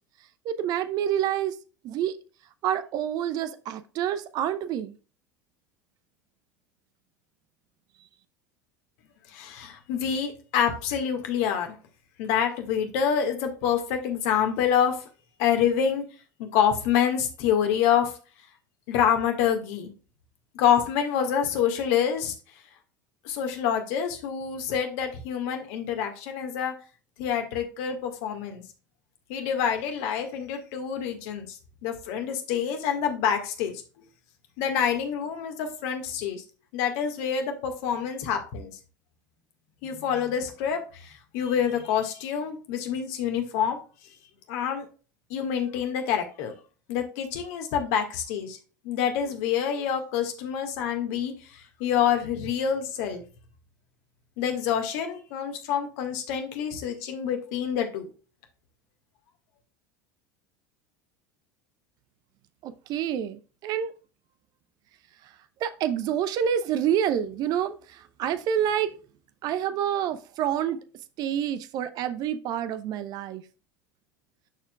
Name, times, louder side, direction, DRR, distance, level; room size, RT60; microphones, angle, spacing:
voice 1, 0.4-1.6 1.8-2.2 2.6-4.9 62.6-63.9 65.6-69.0 69.4-70.8 71.2-73.4, right 9 dB, 45° right, 0.7 m, -28 dB
voice 2, 9.3-11.8 12.2-15.0 15.4-16.0 16.4-18.1 18.9-19.9 20.6-22.3 23.3-26.7 27.2-28.6 29.3-31.6 31.8-33.7 34.6-36.4 36.7-38.7 39.8-43.8 44.5-44.9 45.3-46.5 46.9-48.6 48.8-51.3 51.8-53.2 54.4-58.1, left 8 dB, 55° left, 1.7 m, -27 dB
12.5 x 4.4 x 2.3 m
figure-of-eight pair, 75°, 10 cm